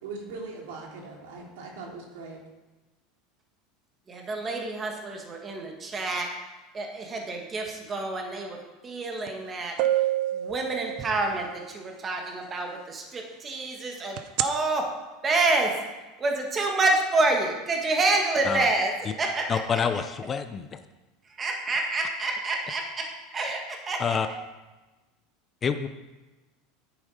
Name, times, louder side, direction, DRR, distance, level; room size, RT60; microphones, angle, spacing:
voice 1, 0.0-2.4, right 3 dB, 80° right, 0 dB, 2.9 m, -40 dB
voice 2, 4.1-6.3 6.7-8.6 8.8-9.7 10.3-14.8 15.2-15.8 16.2-18.9 19.2-19.6 21.4-24.4, right 2 dB, 20° right, 1 dB, 1.6 m, -28 dB
sound 1, 9.3-9.4 9.8-11.5 14.2-14.4, right 14 dB, 50° right, 0.6 m, -26 dB
voice 3, 19.5-20.8 24.0-24.3 25.6-25.9, left 6 dB, 20° left, 9 dB, 0.5 m, -27 dB
10.0 x 8.8 x 4.9 m, 1.1 s
supercardioid pair, 160°, 0 cm